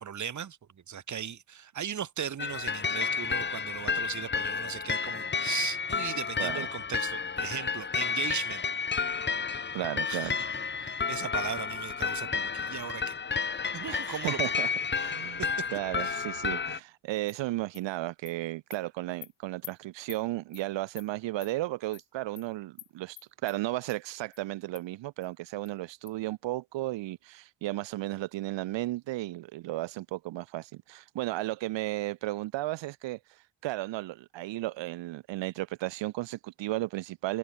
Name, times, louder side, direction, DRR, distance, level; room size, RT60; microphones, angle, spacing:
voice 1, 0.0-0.6 0.9-8.6 10.1-10.3 10.8-13.2 13.7-14.4 15.4-15.6 16.0-16.2, right 8 dB, 40° right, 1.3 m, -37 dB
Psycho Killer Alarm Bell Loop, 2.4-16.8, left 5 dB, 25° left, 0.9 m, -31 dB
voice 2, 9.7-10.4 13.9-15.4 15.7-23.2 23.4-33.2 33.6-37.4, right 17 dB, 85° right, 1.2 m, -34 dB
Animal, 17.3-17.4 17.7-17.8 18.3-18.4 18.7-18.8 19.2-19.3 19.6-19.7 20.1-20.2 20.5-20.6 21.0-21.1 21.4-21.5 21.9-22.0 22.4-22.5 22.8-22.9 23.2-23.6 23.9-24.0 24.3-24.4 24.7-24.8 25.2-25.3 25.7-25.8 26.1-26.2, left 18 dB, 85° left, 1.0 m, -46 dB
cardioid pair, 70°, 43 cm